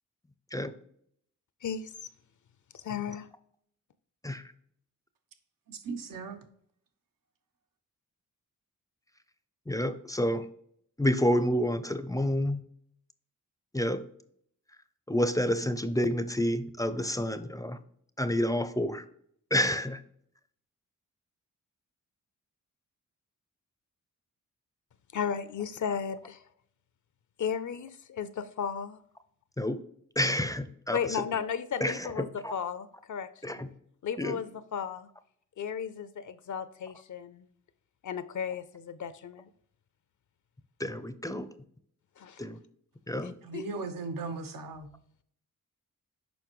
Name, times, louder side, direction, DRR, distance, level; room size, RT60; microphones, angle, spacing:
voice 1, 1.6-2.1 2.7-3.3 25.1-26.4 27.4-29.0 30.9-33.6 34.0-35.1 35.6-37.5 38.0-39.5 42.2-42.4 43.5-43.6, left 7 dB, 60° left, 0.6 m, -35 dB
voice 2, 5.7-6.4 43.4-44.9, right 4 dB, 80° right, 0.9 m, -37 dB
voice 3, 9.7-10.5 11.0-12.6 13.7-14.0 15.1-17.8 18.2-19.0 19.5-20.0 29.6-29.8 30.2-31.2 31.8-32.5 33.4-33.7 34.2-34.4 40.8-41.5 42.4-42.6 43.1-43.3, left 1 dB, 10° left, 0.5 m, -29 dB
7.0 x 5.2 x 3.1 m
cardioid pair, 80°, 33 cm